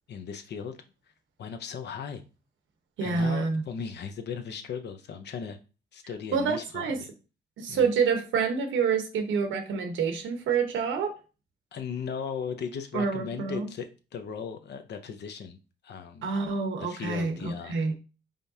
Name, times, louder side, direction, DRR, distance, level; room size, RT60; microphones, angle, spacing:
voice 1, 0.1-0.8 1.4-2.2 3.0-5.6 5.9-7.1 7.7-7.9 11.7-13.9 14.1-15.6 15.8-16.3 16.8-17.8, left 6 dB, 60° left, 7 dB, 0.8 m, -37 dB
voice 2, 3.0-3.6 6.3-7.0 7.6-11.1 12.9-13.7 16.2-17.9, right 5 dB, 75° right, 6 dB, 1.1 m, -27 dB
5.1 x 3.6 x 2.7 m, 0.33 s
cardioid pair, 90°, 20 cm